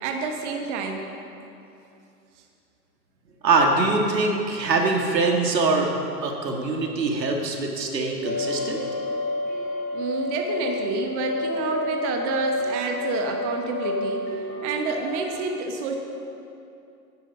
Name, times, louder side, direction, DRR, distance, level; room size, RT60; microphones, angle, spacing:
voice 1, 0.0-1.1 9.9-15.9, right 4 dB, 45° right, 3 dB, 1.3 m, -29 dB
voice 2, 3.4-5.9 6.2-8.8, right 3 dB, 85° right, 1 dB, 1.9 m, -23 dB
sound 1, 8.2-15.4, left 2 dB, 35° left, 2.8 m, -29 dB
10.0 x 9.7 x 5.5 m, 2.7 s
hypercardioid pair, 125°, 49 cm